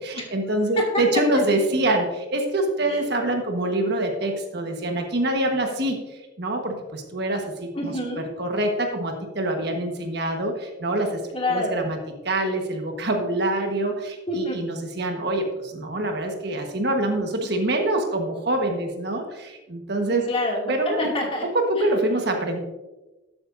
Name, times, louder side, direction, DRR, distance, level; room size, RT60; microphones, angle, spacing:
voice 1, 0.3-2.0 2.3-5.9 6.4-6.6 7.1-7.4 7.8-7.9 8.4-8.7 9.0-10.5 10.8-11.1 11.5-12.0 12.3-13.9 14.4-15.4 15.9-19.2 19.9-20.2 20.7-21.1 21.5-22.6, right 1 dB, 55° right, 3 dB, 1.4 m, -24 dB
voice 2, 7.7-8.3 11.3-11.8 14.3-14.6 20.1-21.4, left 1 dB, 30° left, -2 dB, 2.4 m, -27 dB
12.0 x 8.7 x 2.6 m, 1.1 s
head